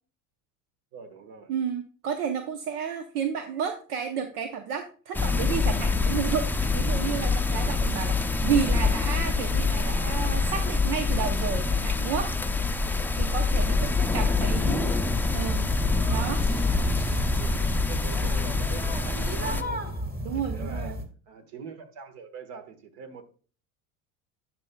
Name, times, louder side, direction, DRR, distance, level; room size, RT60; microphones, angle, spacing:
voice 1, 0.9-1.5 14.8-15.2 17.4-19.9 20.4-21.0 21.3-23.2, right 5 dB, 65° right, 1.6 m, -43 dB
voice 2, 1.5-12.3 13.1-14.9 15.3-15.7 16.1-16.4 20.2-21.0, right 7 dB, 85° right, 0.9 m, -31 dB
sound 1, 5.1-19.6, left 4 dB, 5° left, 0.4 m, -26 dB
sound 2, 15.0-21.0, right 1 dB, 20° right, 1.7 m, -32 dB
10.5 x 6.1 x 2.3 m
hypercardioid pair, 75°, 44 cm